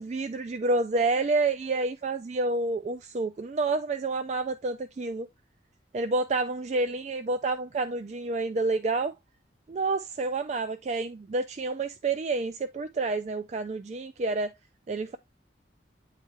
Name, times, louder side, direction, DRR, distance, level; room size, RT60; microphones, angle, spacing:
voice 1, 0.0-5.3 5.9-9.1 9.7-14.5 14.9-15.2, right 3 dB, 35° right, 0.3 m, -29 dB
9.2 x 3.3 x 3.3 m
head